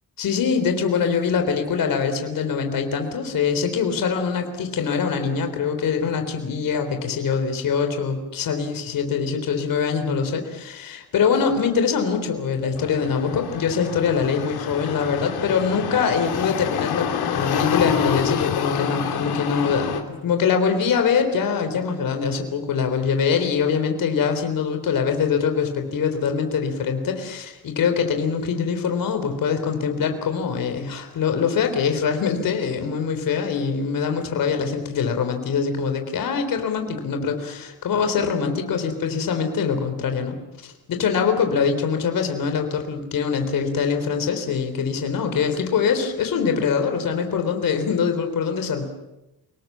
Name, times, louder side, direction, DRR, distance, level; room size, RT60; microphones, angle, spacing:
voice 1, 0.2-40.4 40.6-48.8, left 6 dB, 55° left, 6 dB, 3.9 m, -23 dB
sound 1, 12.7-20.0, left 8 dB, 75° left, 3.2 m, -27 dB
29.5 x 19.5 x 7.5 m, 0.95 s
cardioid pair, 160°, 39 cm